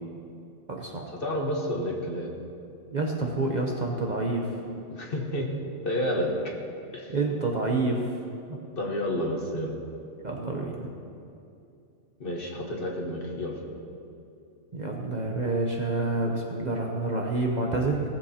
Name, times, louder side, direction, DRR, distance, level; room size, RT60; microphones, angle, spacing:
voice 1, 0.7-1.1 2.9-4.6 7.1-8.2 8.5-8.6 10.2-10.9 14.7-18.0, right 2 dB, 40° right, 0 dB, 0.8 m, -28 dB
voice 2, 1.2-2.3 4.9-5.5 5.8-6.3 6.9-7.1 8.8-9.8 12.2-13.6, left 1 dB, 45° left, 0 dB, 1.4 m, -30 dB
17.5 x 7.5 x 2.8 m, 2.6 s
omnidirectional pair, 1.3 m